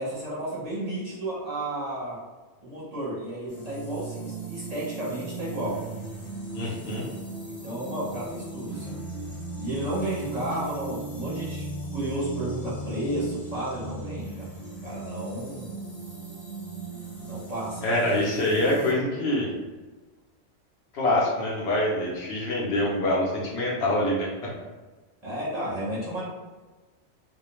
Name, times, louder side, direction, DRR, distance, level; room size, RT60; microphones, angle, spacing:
voice 1, 0.0-2.2 2.6-5.8 7.5-9.0 9.6-11.6 11.9-14.5 14.8-15.7 17.3-18.0 25.2-26.2, right 1 dB, 35° right, -9 dB, 0.9 m, -32 dB
sound 1, 3.5-18.9, right 3 dB, 35° left, 0.8 m, -37 dB
voice 2, 6.5-7.1 17.8-19.5 20.9-24.3, left 1 dB, 65° left, -4 dB, 0.8 m, -25 dB
2.3 x 2.2 x 2.9 m, 1.3 s
omnidirectional pair, 1.3 m